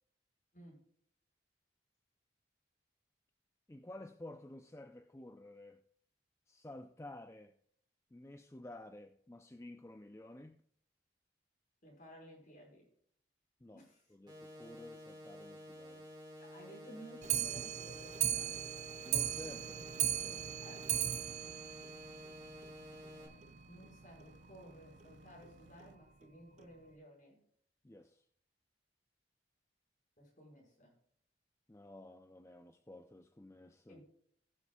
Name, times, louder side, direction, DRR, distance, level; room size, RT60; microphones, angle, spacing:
voice 1, 3.7-5.8 6.5-7.5 8.1-10.6 13.6-13.8 14.1-16.1 19.0-20.6 27.8-28.2 31.7-34.0, left 1 dB, 15° left, 0.5 m, -52 dB
voice 2, 11.8-12.9 13.7-14.0 16.4-19.1 20.6-20.9 22.0-22.1 22.9-27.4 30.2-30.9 33.9-34.0, equal, 45° left, 5.0 m, -56 dB
sound 1, 14.3-23.3, equal, 20° right, 2.4 m, -52 dB
Clock, 17.2-22.7 23.1-23.2 23.4-23.5 23.8-23.9 24.2-24.3 25.0-25.1 25.8-25.9 26.6-26.7, right 10 dB, 40° right, 0.4 m, -37 dB
sound 2, 19.0-26.0, right 2 dB, 90° right, 0.8 m, -60 dB
19.5 x 7.1 x 2.3 m
head